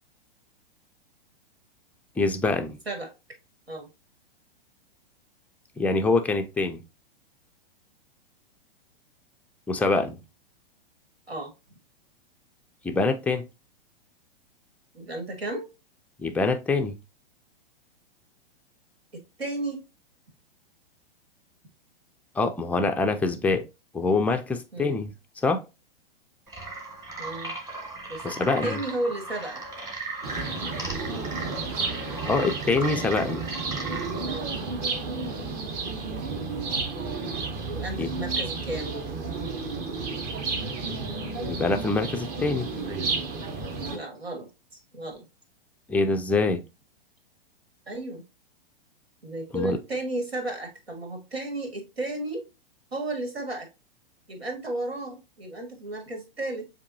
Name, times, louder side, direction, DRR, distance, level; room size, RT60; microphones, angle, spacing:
voice 1, 2.2-2.8 5.8-6.8 9.7-10.2 12.8-13.4 16.2-17.0 22.4-23.6 23.9-25.1 25.4-25.6 28.2-28.8 32.3-33.4 38.0-38.1 41.5-42.7 45.9-46.6 49.5-49.8, left 3 dB, 5° left, 0.3 m, -25 dB
voice 2, 14.9-15.7 19.1-19.8 24.7-25.0 27.2-27.5 28.1-29.6 34.3-34.8 37.7-39.0 43.9-45.2 47.9-48.2 49.2-52.5 52.9-53.7 54.3-56.7, right 2 dB, 90° right, 1.9 m, -33 dB
sound 1, 26.5-34.4, right 2 dB, 10° right, 1.4 m, -36 dB
sound 2, 30.2-44.0, right 4 dB, 35° right, 1.0 m, -32 dB
7.0 x 2.6 x 2.6 m
hypercardioid pair, 110°, 30 cm